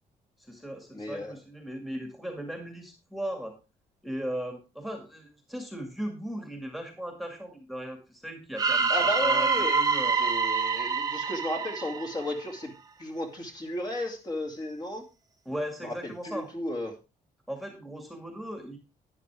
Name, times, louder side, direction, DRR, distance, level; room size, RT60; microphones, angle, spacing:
voice 1, 0.4-3.6 4.0-9.5 9.7-10.2 15.5-16.5 17.5-18.8, equal, ahead, 4 dB, 2.1 m, -37 dB
voice 2, 0.9-1.4 8.9-9.8 10.2-12.7 13.0-15.0 15.8-16.9, left 1 dB, 25° left, 2 dB, 2.5 m, -34 dB
sound 1, 8.6-12.6, right 5 dB, 25° right, 1.0 m, -26 dB
12.5 x 10.0 x 3.4 m, 0.28 s
cardioid pair, 170°, 15 cm